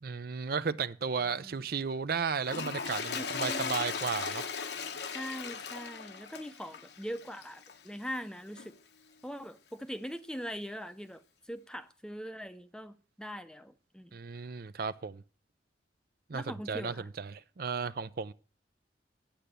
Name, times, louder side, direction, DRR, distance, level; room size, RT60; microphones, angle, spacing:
voice 1, 0.0-4.5 14.1-15.2 16.3-18.3, right 5 dB, 55° right, 0.5 m, -34 dB
Toilet flush, 2.4-7.9 8.6-8.7, left 5 dB, 65° left, 1.0 m, -38 dB
voice 2, 3.2-3.8 5.0-8.8 9.2-11.2 11.5-14.2 16.3-17.1, equal, 5° left, 0.6 m, -41 dB
11.5 x 9.0 x 6.8 m
head